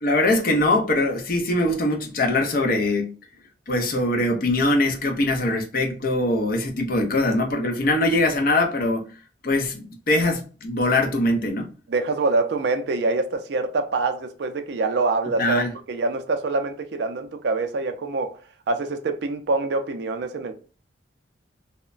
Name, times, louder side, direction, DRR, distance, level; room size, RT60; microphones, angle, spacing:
voice 1, 0.0-3.1 3.7-9.0 9.4-11.7 15.4-15.7, left 2 dB, 50° left, 0.5 m, -22 dB
voice 2, 11.9-18.4 18.7-20.6, right 3 dB, 60° right, 0.4 m, -25 dB
2.9 x 2.1 x 2.4 m
head